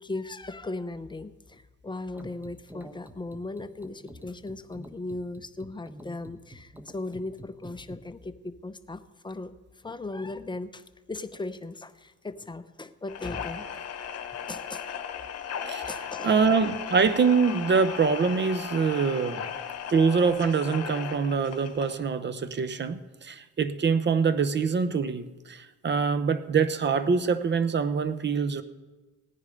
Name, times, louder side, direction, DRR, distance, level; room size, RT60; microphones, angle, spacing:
voice 1, 0.0-13.7 14.5-14.9 15.9-16.3, left 2 dB, 15° left, 10 dB, 0.7 m, -37 dB
sound 1, 2.1-8.0, equal, 5° right, 1.2 m, -47 dB
sound 2, 13.1-22.0, left 8 dB, 55° left, 1.2 m, -36 dB
voice 2, 16.2-19.4 19.9-28.6, right 5 dB, 35° right, 13 dB, 0.9 m, -24 dB
17.5 x 9.8 x 5.3 m, 1.2 s
cardioid pair, 90°, 30 cm